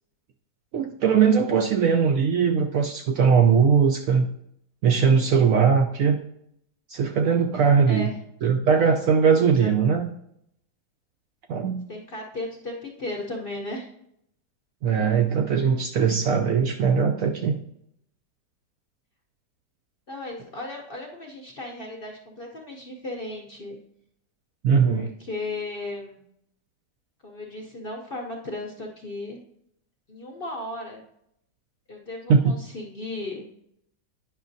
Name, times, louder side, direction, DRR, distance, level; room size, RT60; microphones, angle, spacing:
voice 1, 0.7-4.3 4.8-6.2 6.9-8.1 8.4-10.1 11.5-11.8 14.8-17.6 24.6-25.1 32.3-32.5, right 6 dB, 70° right, 3 dB, 0.8 m, -20 dB
voice 2, 7.9-8.2 9.4-9.7 11.9-13.9 20.1-23.8 24.8-26.2 27.2-29.4 30.1-31.0 31.9-33.5, left 2 dB, 45° left, 0 dB, 0.7 m, -35 dB
9.4 x 6.0 x 2.6 m, 0.74 s
omnidirectional pair, 1.8 m